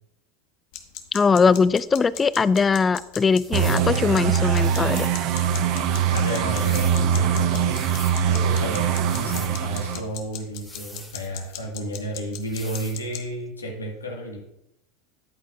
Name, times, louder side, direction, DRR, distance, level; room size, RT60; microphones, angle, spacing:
sound 1, 0.7-13.2, left 12 dB, 55° left, 1.2 m, -39 dB
voice 1, 1.1-5.1, left 5 dB, 20° left, 18 dB, 0.4 m, -20 dB
sound 2, 3.3-3.9 4.6-5.2 6.2-7.0 7.6-8.2 9.0-9.6 10.5-11.6 12.4-13.0, left 1 dB, 5° left, 1.8 m, -43 dB
sound 3, 3.5-10.0, right 8 dB, 50° right, 0.8 m, -22 dB
voice 2, 6.1-14.4, right 1 dB, 90° left, 0 dB, 1.4 m, -32 dB
13.0 x 8.3 x 2.3 m, 0.84 s
figure-of-eight pair, 80°, 0 cm